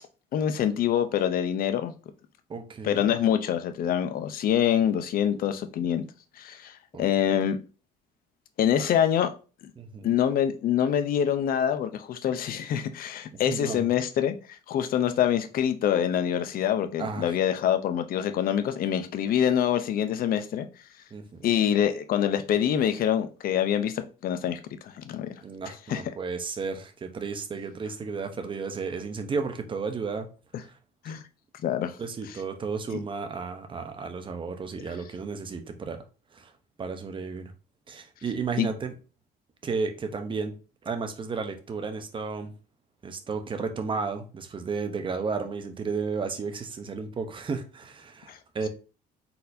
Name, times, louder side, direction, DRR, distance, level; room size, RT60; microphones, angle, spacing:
voice 1, 0.3-1.9 2.8-6.0 6.4-7.6 8.6-9.3 10.0-14.4 14.7-20.7 21.4-25.3 25.7-26.0 31.0-31.2 31.6-32.0 32.9-33.0 38.6-38.7 48.3-48.4, left 9 dB, 60° left, 0.6 m, -25 dB
voice 2, 2.5-3.1 6.9-7.0 8.8-8.9 9.8-10.2 13.3-13.9 17.0-17.4 21.1-21.5 25.4-30.3 30.6-30.7 31.0-31.1 32.0-36.0 36.3-36.5 36.8-37.5 37.9-38.9 39.6-40.5 40.8-42.5 43.0-48.7, right 5 dB, 30° right, 0.8 m, -33 dB
4.2 x 4.1 x 2.7 m
cardioid pair, 110°, 17 cm